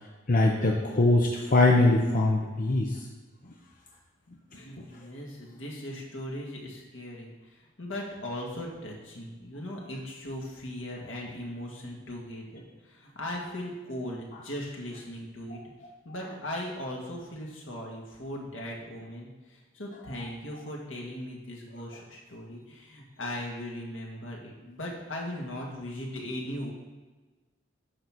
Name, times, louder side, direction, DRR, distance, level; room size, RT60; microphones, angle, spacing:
voice 1, 0.3-3.0 4.8-4.9, left 2 dB, 45° left, 0 dB, 0.7 m, -22 dB
voice 2, 4.5-15.6 16.0-26.7, left 1 dB, 75° left, -2 dB, 1.9 m, -38 dB
9.9 x 4.0 x 6.1 m, 1.3 s
head